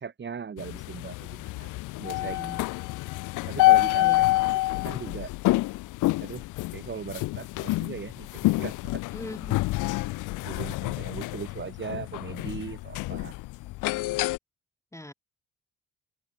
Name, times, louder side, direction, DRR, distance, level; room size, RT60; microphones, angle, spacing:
voice 1, 0.0-1.7 2.0-2.5 3.5-4.6 4.8-5.3 6.2-6.4 6.7-9.0 10.4-13.3, right 6 dB, 40° right, 1.6 m, -39 dB
sound 1, 0.6-14.4, left 20 dB, 85° left, 0.5 m, -27 dB
voice 2, 2.2-2.6 4.0-4.3 9.1-9.6 14.9-15.1, left 1 dB, 10° left, 1.2 m, -40 dB
cardioid pair, 90°, 30 cm